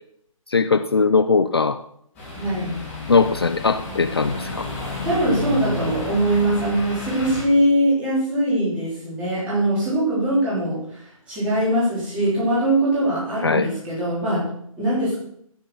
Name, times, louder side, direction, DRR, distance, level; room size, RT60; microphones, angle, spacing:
voice 1, 0.5-1.8 3.1-4.7 13.4-13.7, left 4 dB, 45° left, 11 dB, 0.5 m, -19 dB
sound 1, 2.1-7.4, left 2 dB, 10° left, 3.1 m, -31 dB
voice 2, 2.3-2.8 5.0-14.5 14.8-15.2, right 1 dB, 5° right, -9 dB, 3.5 m, -22 dB
15.0 x 6.7 x 5.9 m, 0.70 s
hypercardioid pair, 175°, 18 cm